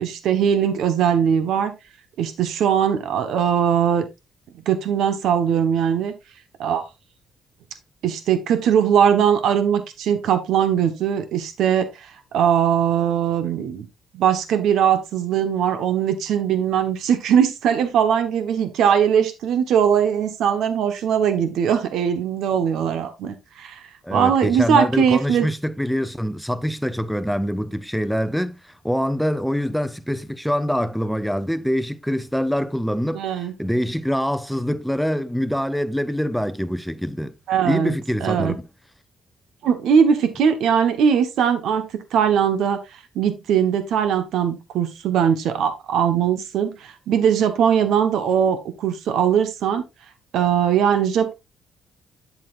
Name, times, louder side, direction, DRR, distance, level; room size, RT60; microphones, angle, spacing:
voice 1, 0.0-1.7 2.2-4.0 4.6-6.1 6.6-6.8 8.0-13.9 14.1-23.8 24.1-25.5 33.1-33.5 37.5-37.9 38.2-38.6 39.6-42.8 43.1-49.8 50.3-51.3, right 8 dB, 80° right, 1.3 m, -20 dB
voice 2, 24.0-37.3 37.6-38.7, equal, ahead, 0.7 m, -24 dB
8.5 x 7.5 x 2.6 m
cardioid pair, 90°, 0 cm